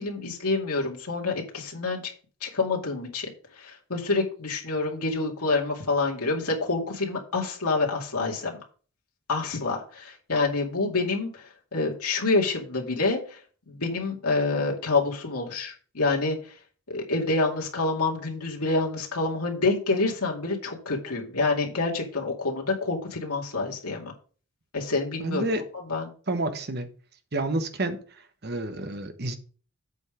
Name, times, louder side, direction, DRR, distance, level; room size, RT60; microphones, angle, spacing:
voice 1, 0.0-2.1 2.4-3.3 3.6-8.6 9.3-13.4 13.7-16.5 16.9-24.1 24.7-25.5 25.9-26.1, left 3 dB, 85° left, 2.4 m, -27 dB
voice 2, 25.2-25.7 26.3-26.9 27.3-28.0 28.4-29.4, right 2 dB, 45° right, 1.1 m, -29 dB
8.1 x 5.3 x 4.9 m
head